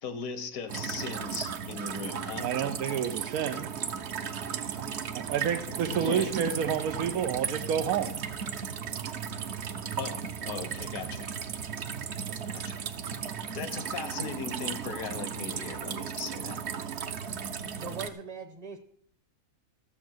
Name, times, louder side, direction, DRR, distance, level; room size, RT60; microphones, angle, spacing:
voice 1, 0.0-2.5 5.9-6.3 10.0-11.3 12.5-12.9 13.5-16.6, left 5 dB, 75° left, 11 dB, 1.4 m, -38 dB
sound 1, 0.7-18.1, right 7 dB, 55° right, 1.0 m, -35 dB
voice 2, 2.4-3.7 5.1-8.2, right 8 dB, 85° right, 6 dB, 1.2 m, -29 dB
voice 3, 17.7-18.8, right 5 dB, 30° right, 6 dB, 0.9 m, -40 dB
13.0 x 7.1 x 6.4 m, 0.63 s
omnidirectional pair, 1.5 m